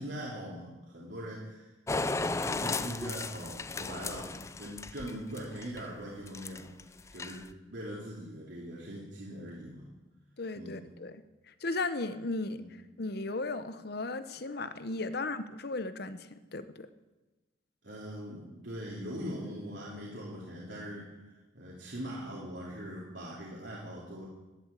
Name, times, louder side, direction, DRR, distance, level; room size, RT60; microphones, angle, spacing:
voice 1, 0.0-6.6 7.1-9.9 10.5-10.8 12.6-12.7 17.8-24.2, equal, 65° right, -6 dB, 3.1 m, -41 dB
sound 1, 1.9-5.8 6.3-6.8 7.1-7.5, left 3 dB, 15° left, 0.4 m, -35 dB
voice 2, 10.4-12.6 13.0-16.9, left 3 dB, 55° left, 12 dB, 0.8 m, -36 dB
11.5 x 11.0 x 8.3 m, 1.1 s
head